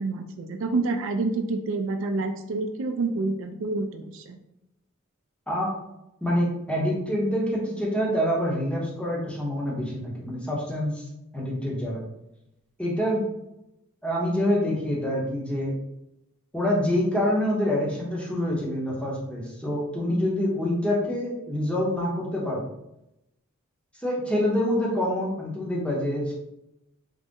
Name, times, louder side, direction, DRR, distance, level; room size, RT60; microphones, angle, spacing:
voice 1, 0.0-4.4, right 3 dB, 60° right, 6 dB, 0.3 m, -28 dB
voice 2, 6.2-11.1 11.3-12.0 12.8-13.2 14.0-15.7 16.5-22.6 24.0-26.3, left 1 dB, 5° left, -4 dB, 0.7 m, -26 dB
3.9 x 2.1 x 3.6 m, 0.87 s
head